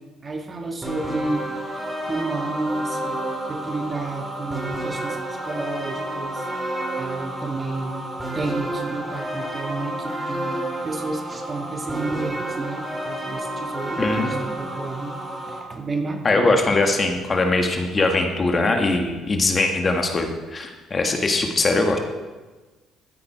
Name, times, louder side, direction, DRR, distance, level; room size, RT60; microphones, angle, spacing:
voice 1, 0.0-3.2 3.5-16.6, right 3 dB, 35° right, 3 dB, 1.8 m, -31 dB
sound 1, 0.8-15.6, right 1 dB, 15° right, 2.8 m, -30 dB
voice 2, 14.0-14.4 16.2-22.0, left 2 dB, 35° left, 3 dB, 1.8 m, -21 dB
14.5 x 8.5 x 4.6 m, 1.2 s
supercardioid pair, 75°, 0 cm